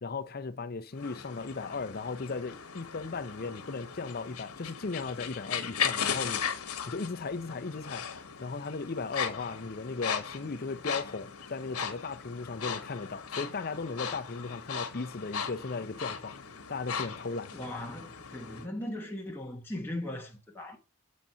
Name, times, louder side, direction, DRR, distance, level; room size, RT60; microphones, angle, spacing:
voice 1, 0.0-6.4 6.9-8.0 8.4-16.3 16.7-17.5, left 4 dB, 40° left, 0.5 m, -36 dB
sound 1, 1.0-18.7, left 7 dB, 85° left, 1.1 m, -38 dB
voice 2, 17.5-20.8, left 1 dB, 10° left, 1.1 m, -38 dB
7.4 x 4.1 x 5.5 m
head